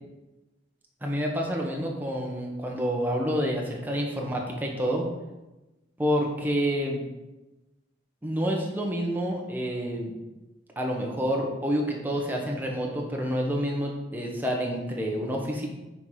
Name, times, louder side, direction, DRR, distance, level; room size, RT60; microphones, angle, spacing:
voice 1, 1.0-5.1 6.0-7.0 8.2-10.1 10.8-15.7, equal, 10° right, -1 dB, 1.0 m, -28 dB
5.7 x 4.2 x 4.8 m, 1.0 s
head